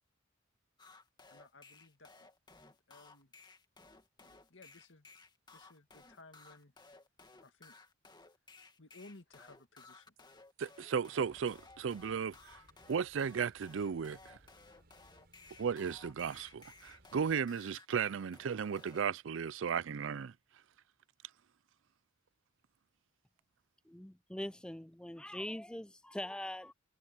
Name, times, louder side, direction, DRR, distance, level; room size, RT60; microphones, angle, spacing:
sound 1, 0.8-19.0, left 3 dB, 20° left, 2.2 m, -58 dB
voice 1, 1.3-2.3 2.9-3.3 4.2-5.1 5.5-6.7 7.4-7.8 8.8-10.1, left 2 dB, 70° left, 2.3 m, -58 dB
voice 2, 10.6-12.6 12.9-14.4 15.6-20.3, right 6 dB, 70° right, 0.4 m, -35 dB
sound 2, 11.2-17.3, right 1 dB, 55° right, 6.4 m, -66 dB
voice 3, 23.9-26.7, left 1 dB, 5° left, 0.5 m, -42 dB
head